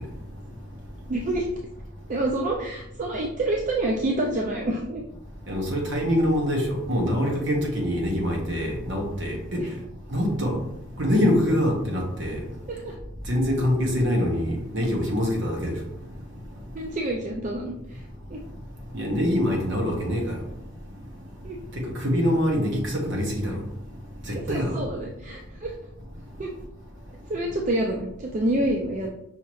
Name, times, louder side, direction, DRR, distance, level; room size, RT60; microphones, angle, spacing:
voice 1, 1.1-1.5 2.1-5.0 9.6-9.7 12.7-12.9 16.7-18.0 18.3-18.4 21.4-21.6 24.3-25.7 26.4-26.5 27.3-29.1, right 1 dB, 40° right, 0 dB, 0.4 m, -27 dB
voice 2, 5.5-9.6 10.1-10.6 11.0-12.4 13.3-15.8 18.9-20.4 21.8-23.6 24.3-24.8, equal, 60° right, 0 dB, 1.2 m, -24 dB
5.6 x 2.9 x 3.1 m, 0.82 s
head